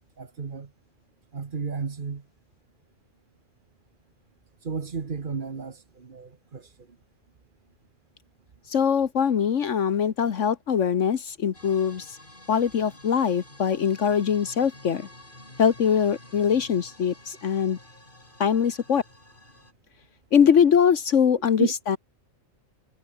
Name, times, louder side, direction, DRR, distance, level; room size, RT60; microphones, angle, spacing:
voice 1, 0.2-0.7 1.3-2.2 4.6-6.7 21.6-21.7, right 5 dB, 40° right, 1.4 m, -32 dB
voice 2, 8.7-12.2 12.5-15.1 15.6-17.8 18.4-19.0 20.3-22.0, left 7 dB, 65° left, 1.4 m, -22 dB
sound 1, 11.5-19.7, left 1 dB, 40° left, 5.4 m, -49 dB
omnidirectional pair, 1.4 m